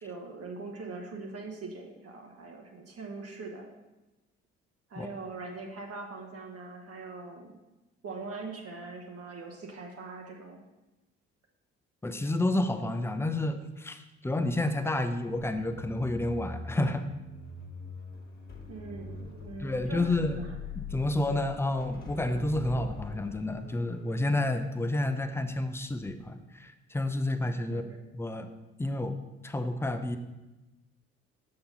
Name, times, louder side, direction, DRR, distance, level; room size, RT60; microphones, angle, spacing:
voice 1, 0.0-3.7 4.9-7.5 8.0-10.6 18.7-20.5 27.6-27.9, right 3 dB, 40° right, 2 dB, 1.2 m, -42 dB
voice 2, 12.0-17.1 19.6-20.4 20.8-27.8 28.1-28.5 28.8-29.2 29.4-30.2, left 2 dB, 5° left, 8 dB, 0.5 m, -30 dB
sound 1, 15.5-25.7 26.0-26.3, left 4 dB, 25° left, 1.6 m, -44 dB
6.9 x 3.9 x 5.5 m, 1.0 s
figure-of-eight pair, 45°, 36 cm